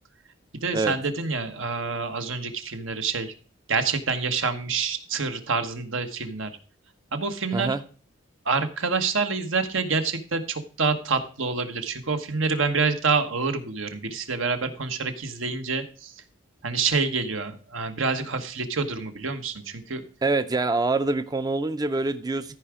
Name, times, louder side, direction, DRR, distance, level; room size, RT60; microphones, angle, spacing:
voice 1, 0.5-3.3 3.7-6.5 7.1-7.7 8.4-16.1 16.6-20.0, right 4 dB, 80° right, 7 dB, 1.3 m, -27 dB
voice 2, 20.2-22.5, right 3 dB, 20° right, 11 dB, 0.4 m, -25 dB
14.0 x 4.8 x 4.9 m, 0.40 s
head